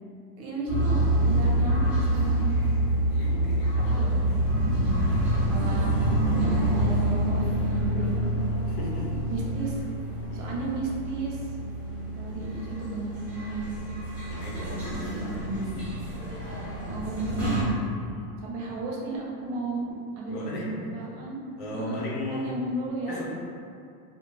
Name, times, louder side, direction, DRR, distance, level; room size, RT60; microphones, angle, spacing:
voice 1, 0.3-2.6 3.7-4.3 4.6-4.9 5.5-6.0 6.4-8.3 9.3-9.8 10.3-11.5 12.2-13.6 14.6-15.7 16.8-17.6 18.4-21.4 21.7-22.0 22.3-23.2, right 2 dB, 45° right, -3 dB, 0.6 m, -34 dB
sound 1, 0.7-17.6, right 1 dB, 5° right, 0.8 m, -27 dB
voice 2, 3.1-3.8 5.0-5.2 8.7-9.3 10.3-10.6 14.1-16.0 18.0-18.2 20.3-20.9 21.6-22.5 23.1-23.2, left 1 dB, 75° left, -5 dB, 0.9 m, -36 dB
2.5 x 2.1 x 3.1 m, 2.5 s
supercardioid pair, 130°, 46 cm